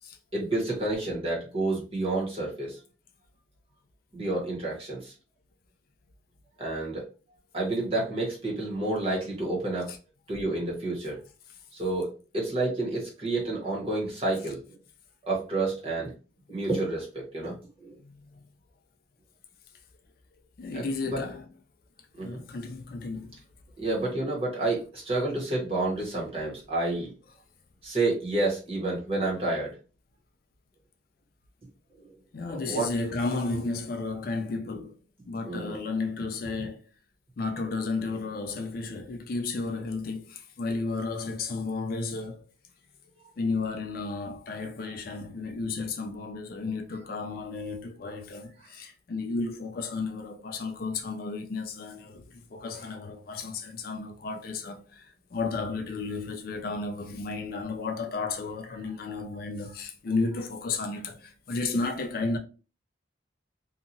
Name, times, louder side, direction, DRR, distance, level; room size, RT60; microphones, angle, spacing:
voice 1, 0.3-2.8 4.1-5.1 6.6-7.0 7.5-9.9 10.3-11.2 11.7-14.6 15.3-16.1 16.5-17.5 17.8-17.9 20.7-21.2 22.2-22.4 23.8-27.1 27.8-29.8 32.7-32.9 35.5-35.8, right 2 dB, 30° right, 1.2 m, -29 dB
voice 2, 18.0-18.4 20.6-21.5 22.2-23.4 32.3-35.0 35.3-36.9 37.4-42.5 43.4-62.4, left 3 dB, 50° left, 0.4 m, -33 dB
2.8 x 2.4 x 2.5 m
head